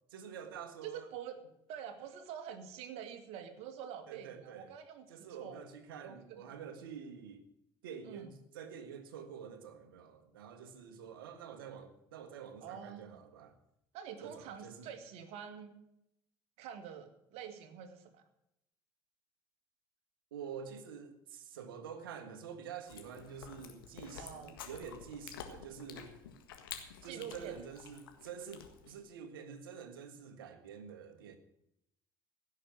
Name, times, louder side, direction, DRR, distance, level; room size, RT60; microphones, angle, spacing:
voice 1, 0.1-1.1 4.1-4.7 5.1-7.5 7.8-13.6 14.2-14.9 20.3-26.2 27.0-31.4, right 7 dB, 80° right, 1.6 m, -48 dB
voice 2, 0.8-1.4 1.7-5.6 6.0-6.4 8.1-8.2 12.6-13.1 13.9-15.8 16.6-18.2 24.2-24.6 27.0-27.6, right 8 dB, 65° right, 2.0 m, -46 dB
Chewing mastication, 22.9-29.0, left 8 dB, 85° left, 1.7 m, -50 dB
16.5 x 6.6 x 9.0 m
hypercardioid pair, 65°, 11 cm